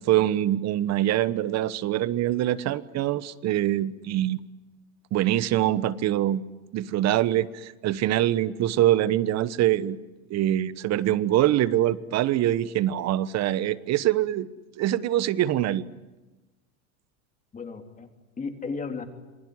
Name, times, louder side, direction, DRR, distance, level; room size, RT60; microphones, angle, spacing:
voice 1, 0.1-4.4 5.1-6.4 6.7-10.0 10.3-14.5 14.8-15.8, right 13 dB, 40° right, 17 dB, 1.2 m, -24 dB
voice 2, 17.5-19.0, left 4 dB, 20° left, 5 dB, 3.4 m, -35 dB
27.5 x 20.5 x 9.7 m, 1.1 s
hypercardioid pair, 110°, 42 cm